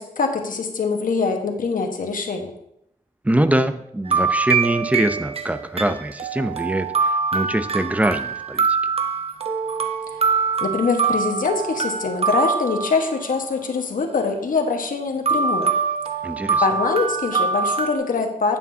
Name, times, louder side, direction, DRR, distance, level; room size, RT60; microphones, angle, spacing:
voice 1, 0.0-2.5 10.6-15.7 16.6-18.6, left 4 dB, 70° left, 4 dB, 1.3 m, -23 dB
voice 2, 3.2-8.7 16.2-16.6, right 1 dB, 10° right, 10 dB, 0.6 m, -23 dB
sound 1, 4.1-13.4 15.3-18.0, right 5 dB, 45° right, 0.9 m, -24 dB
11.5 x 8.5 x 2.8 m, 0.78 s
wide cardioid pair, 100°, 15 cm